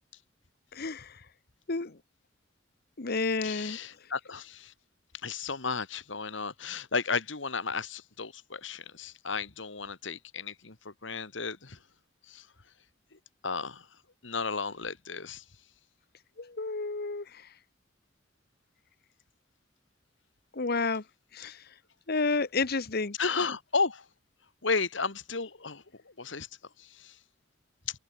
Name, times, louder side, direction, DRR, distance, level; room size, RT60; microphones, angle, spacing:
voice 1, 0.7-1.2 1.7-2.0 3.0-3.8 16.4-17.5 20.5-21.0 21.3-21.6 22.1-23.2, left 3 dB, 55° left, 1.2 m, -31 dB
voice 2, 3.4-4.7 5.2-11.8 12.3-12.5 13.4-13.9 14.2-15.4 23.2-24.0 24.6-25.8 26.2-26.5 26.8-27.1, left 4 dB, 70° left, 2.2 m, -33 dB
head